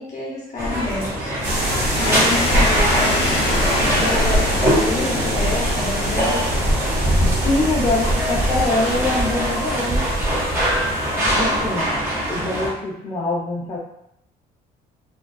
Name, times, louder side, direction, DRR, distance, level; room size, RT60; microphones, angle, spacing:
voice 1, 0.0-1.3 2.0-6.5, left 2 dB, 45° left, -4 dB, 0.9 m, -28 dB
sound 1, 0.6-12.7, equal, 15° right, 1.0 m, -22 dB
sound 2, 1.4-12.1, equal, 80° right, 0.9 m, -25 dB
sound 3, 2.0-8.4, left 2 dB, 85° left, 0.6 m, -28 dB
voice 2, 7.4-10.0 11.3-11.9 12.3-13.8, left 2 dB, 25° left, -6 dB, 0.5 m, -24 dB
2.4 x 2.2 x 2.3 m, 0.79 s
cardioid pair, 110°, 17 cm